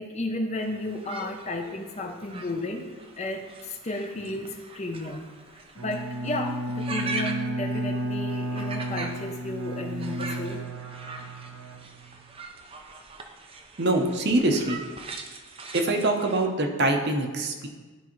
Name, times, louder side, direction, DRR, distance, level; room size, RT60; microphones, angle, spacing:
voice 1, 0.0-2.9 3.2-5.3 5.8-10.6, left 2 dB, 30° left, 4 dB, 0.6 m, -33 dB
sound 1, 0.6-16.5, right 3 dB, 25° right, 0.5 m, -41 dB
Bowed string instrument, 5.8-12.4, right 1 dB, 80° right, 0.8 m, -33 dB
voice 2, 13.8-14.8 15.7-17.7, right 2 dB, 50° right, 3 dB, 0.8 m, -24 dB
12.0 x 4.7 x 3.1 m, 1.3 s
head